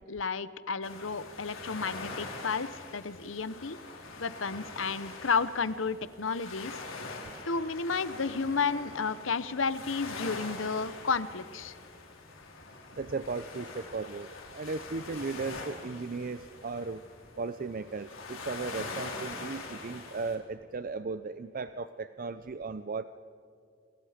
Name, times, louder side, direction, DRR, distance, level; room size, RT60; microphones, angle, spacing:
voice 1, 0.1-3.8 4.2-6.8 7.5-11.7, left 5 dB, 75° left, 14 dB, 0.9 m, -32 dB
sound 1, 0.8-20.4, left 3 dB, 90° left, 4.3 m, -44 dB
voice 2, 13.0-17.0 17.4-23.0, right 4 dB, 45° right, 12 dB, 0.5 m, -36 dB
27.0 x 27.0 x 5.1 m, 2.4 s
head